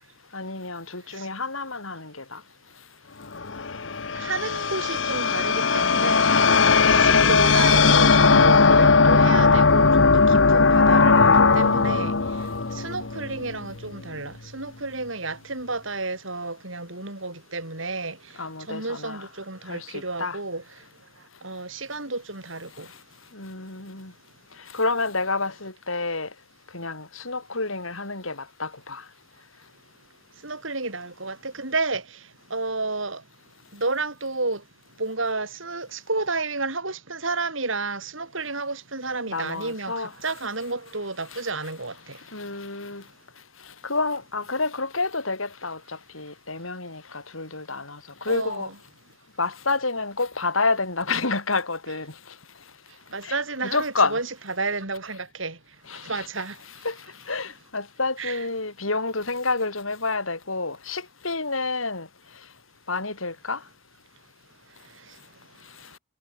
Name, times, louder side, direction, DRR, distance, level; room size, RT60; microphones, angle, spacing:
voice 1, 0.3-2.4 6.9-7.7 18.4-19.3 19.7-20.4 23.3-24.1 24.7-26.3 26.7-29.0 39.3-40.1 41.3-41.4 42.3-43.0 43.8-48.7 49.4-52.1 53.2-53.4 53.6-54.2 55.9-56.3 56.6-57.0 57.3-62.1 62.9-63.6, left 3 dB, 85° left, 7.4 m, -29 dB
sound 1, 3.3-13.6, left 4 dB, 65° left, 1.2 m, -18 dB
voice 2, 4.1-6.3 6.9-12.2 12.7-18.2 18.7-20.6 21.4-22.9 30.4-32.2 32.5-33.2 33.7-34.6 35.0-42.2 48.3-48.7 53.1-55.6 56.0-56.6 58.2-58.4, right 3 dB, 75° right, 7.0 m, -31 dB
head